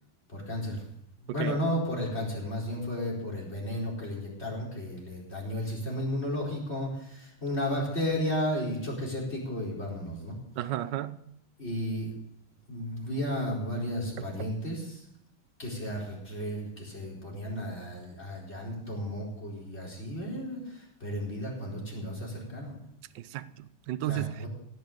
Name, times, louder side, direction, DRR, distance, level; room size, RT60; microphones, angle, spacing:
voice 1, 0.3-0.8 1.2-10.3 11.6-12.1 12.7-15.0 15.6-20.6 21.0-22.7 24.1-24.5, equal, 30° left, -3 dB, 4.8 m, -33 dB
voice 2, 1.3-1.6 10.6-11.3 14.4-14.5 23.1-24.5, right 13 dB, 70° right, 13 dB, 1.2 m, -34 dB
16.5 x 6.6 x 8.7 m, 0.75 s
omnidirectional pair, 2.4 m